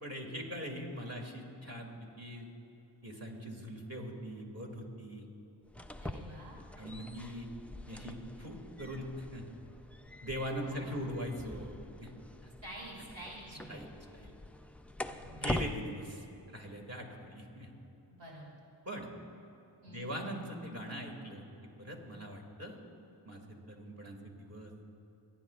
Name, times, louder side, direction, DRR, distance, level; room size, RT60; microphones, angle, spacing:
voice 1, 0.0-2.5 3.0-5.3 6.8-7.5 7.9-9.5 10.2-12.1 13.5-14.3 15.3-17.7 18.9-19.1 19.9-21.4 21.8-22.8 23.2-24.7, equal, 35° right, 0 dB, 2.3 m, -42 dB
sound 1, 5.6-15.7, left 1 dB, 5° left, 0.4 m, -44 dB
voice 2, 6.0-6.6 10.5-11.2 12.6-13.7 15.1-15.5 18.1-18.5 19.8-20.1, right 1 dB, 75° right, -5 dB, 3.2 m, -49 dB
27.0 x 9.4 x 2.4 m, 2.9 s
cardioid pair, 50°, 45 cm